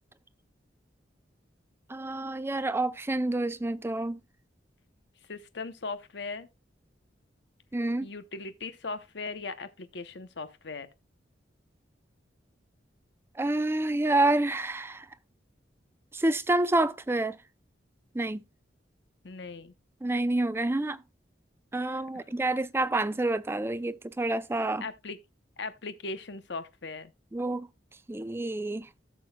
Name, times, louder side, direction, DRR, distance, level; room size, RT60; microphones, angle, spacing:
voice 1, 1.9-4.2 7.7-8.1 13.4-15.1 16.1-17.4 18.1-18.4 20.0-21.0 21.7-24.8 27.3-27.7 28.1-28.9, right 2 dB, 15° right, 0.4 m, -28 dB
voice 2, 5.3-6.5 8.0-10.9 19.2-19.7 21.8-22.2 24.8-25.2 25.6-27.1, left 3 dB, 65° left, 0.8 m, -39 dB
15.5 x 6.2 x 2.2 m
head